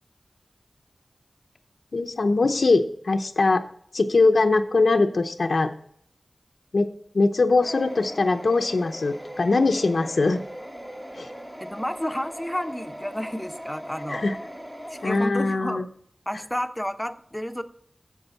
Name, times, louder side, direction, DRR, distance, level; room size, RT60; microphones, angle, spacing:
voice 1, 1.9-3.6 3.9-5.7 6.7-6.9 7.1-10.4 11.2-11.3 14.1-14.4 15.0-15.9, left 3 dB, 80° left, 5 dB, 0.7 m, -21 dB
sound 1, 7.6-15.3, equal, 15° right, 1.4 m, -39 dB
voice 2, 11.6-14.3 14.9-15.9 16.3-17.6, equal, 10° left, 8 dB, 0.9 m, -31 dB
8.2 x 7.8 x 5.8 m, 0.65 s
wide cardioid pair, 50°, 0 cm